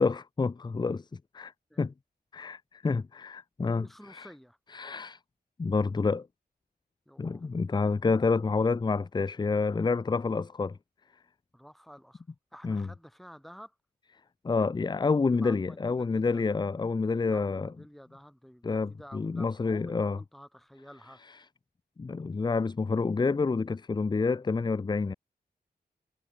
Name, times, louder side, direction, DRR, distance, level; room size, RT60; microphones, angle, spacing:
voice 1, 0.0-1.5 1.8-1.9 2.3-4.3 4.7-5.2 5.6-6.3 7.2-10.8 12.6-12.9 14.4-17.7 18.6-20.2 22.0-25.1, left 4 dB, 25° left, 0.7 m, -28 dB
voice 2, 3.8-4.6 7.1-7.5 11.5-12.2 12.5-13.8 15.3-16.6 17.3-21.2, equal, ahead, 7.0 m, -50 dB
wide cardioid pair, 155°, 17 cm